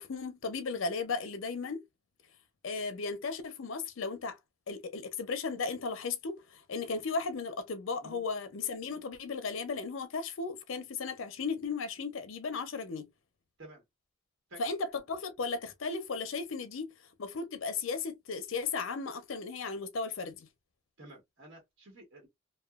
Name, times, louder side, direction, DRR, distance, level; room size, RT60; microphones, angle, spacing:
voice 1, 0.0-1.8 2.6-4.4 4.7-13.1 14.6-14.8 15.1-16.9 17.2-20.5, left 4 dB, 65° left, 0.5 m, -35 dB
voice 2, 21.0-22.3, right 1 dB, 60° right, 1.1 m, -51 dB
2.8 x 2.2 x 2.3 m
head